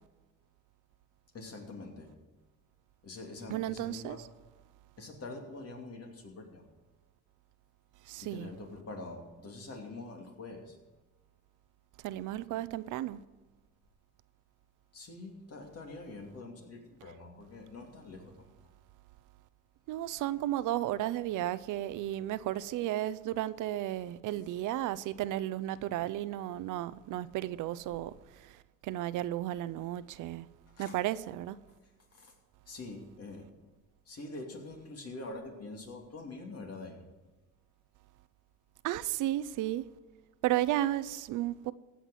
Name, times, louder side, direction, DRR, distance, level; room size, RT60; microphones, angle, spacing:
voice 1, 1.3-2.1 3.0-4.2 5.0-6.6 8.3-10.8 14.9-18.5 30.8-31.0 32.1-32.3 32.7-33.5 34.1-37.1, left 2 dB, 55° left, 2.7 m, -45 dB
voice 2, 3.5-4.2 8.1-8.5 12.0-13.2 19.9-28.1 28.4-28.5 28.8-30.5 30.8-31.6 38.8-39.9 40.4-41.7, right 14 dB, 85° right, 0.6 m, -33 dB
15.5 x 5.9 x 7.5 m
cardioid pair, 90°, 30 cm